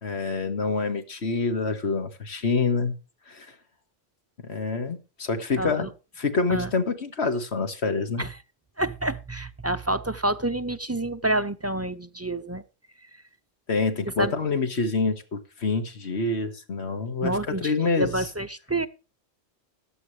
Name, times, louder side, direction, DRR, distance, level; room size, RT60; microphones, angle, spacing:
voice 1, 0.0-2.9 3.3-3.5 4.5-5.9 6.2-8.2 13.7-18.1, left 4 dB, 65° left, 8 dB, 2.0 m, -26 dB
voice 2, 5.6-5.9 6.5-6.7 8.2-8.4 8.8-12.6 13.0-13.2 14.1-14.3 17.2-17.7 18.0-18.9, right 1 dB, 20° right, 10 dB, 0.4 m, -28 dB
14.5 x 11.0 x 3.2 m, 0.33 s
omnidirectional pair, 1.2 m